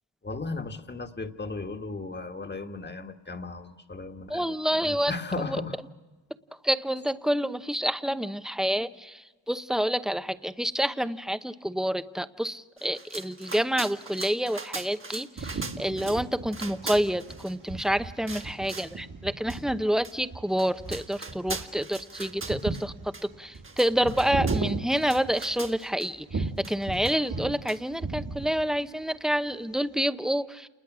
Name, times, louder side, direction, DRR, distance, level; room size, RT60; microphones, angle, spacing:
voice 1, 0.2-5.8, left 3 dB, 25° left, 6 dB, 1.6 m, -36 dB
voice 2, 4.3-5.1 6.6-9.1 9.5-22.9 23.4-30.7, equal, ahead, 11 dB, 0.8 m, -28 dB
sound 1, 12.8-16.2 16.5-17.9 18.3-19.0 19.5-19.6 20.0-20.2 20.5-22.9 23.1-23.3 23.5-26.1 26.6-27.4 27.7-27.8, right 3 dB, 25° right, 1.5 m, -41 dB
sound 2, 15.4-25.8 26.3-27.6 27.9-28.8, right 3 dB, 45° right, 1.9 m, -35 dB
28.5 x 20.5 x 6.2 m, 1.2 s
cardioid pair, 85°, 45 cm